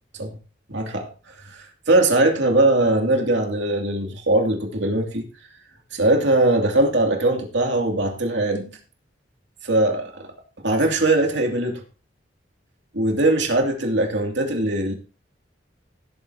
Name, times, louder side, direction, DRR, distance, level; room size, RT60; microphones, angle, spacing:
voice 1, 0.7-1.1 1.4-5.3 5.9-8.8 9.6-10.2 10.6-11.8 12.9-14.9, right 2 dB, 75° right, 2.6 m, -21 dB
17.0 x 8.0 x 2.9 m
head